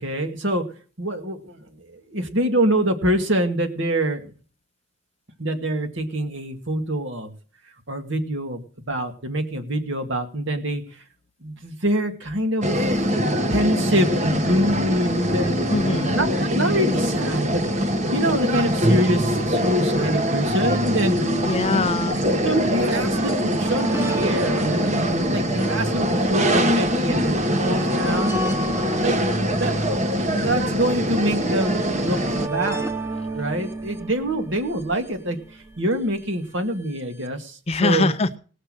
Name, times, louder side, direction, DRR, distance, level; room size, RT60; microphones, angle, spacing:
voice 1, 0.0-0.6 1.0-1.4 2.1-4.2 5.4-7.3 7.9-8.6 8.9-10.8 11.4-12.7 13.5-15.6 16.1-17.6 18.1-21.3 21.7-21.9 22.4-28.4 29.0-29.2 29.6-32.2 32.5-32.8 33.3-35.4 35.8-37.4 37.8-38.1, right 1 dB, 60° right, 2.2 m, -25 dB
sound 1, 12.6-32.5, equal, 35° right, 1.3 m, -23 dB
voice 2, 15.7-16.1 21.4-22.2 37.7-38.4, left 3 dB, 30° left, 0.6 m, -23 dB
sound 2, 19.8-19.9 20.8-36.0 37.0-37.1 37.3-37.4, right 1 dB, 15° right, 1.1 m, -33 dB
19.0 x 6.6 x 6.3 m
head